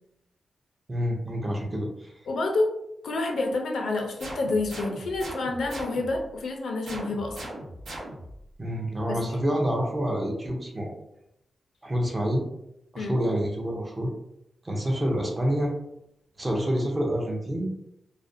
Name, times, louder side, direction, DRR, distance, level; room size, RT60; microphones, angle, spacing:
voice 1, 0.9-2.1 8.6-10.9 11.8-12.4 12.9-14.1 14.6-15.7 16.4-17.7, equal, 25° right, 0 dB, 0.5 m, -27 dB
voice 2, 2.3-2.7 3.0-7.4 9.1-9.4 13.0-13.2, left 2 dB, 75° left, 2 dB, 0.4 m, -28 dB
sound 1, 4.2-6.3 6.9-8.4, right 1 dB, 85° right, 0.9 m, -39 dB
2.4 x 2.1 x 2.5 m, 0.81 s
wide cardioid pair, 130°, 0 cm